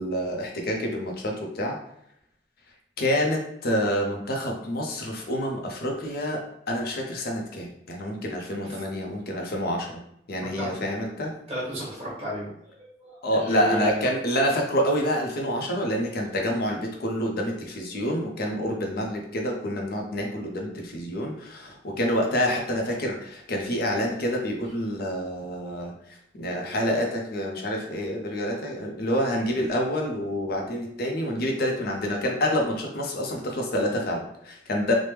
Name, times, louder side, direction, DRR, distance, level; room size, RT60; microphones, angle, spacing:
voice 1, 0.0-1.8 3.0-10.0 10.3-11.3 13.2-25.9 26.4-34.9, equal, 55° left, 1 dB, 0.6 m, -27 dB
voice 2, 10.4-10.7 11.5-12.7 13.0-14.0 21.7-21.8, equal, 30° right, -6 dB, 1.4 m, -33 dB
3.3 x 2.1 x 3.0 m, 0.74 s
head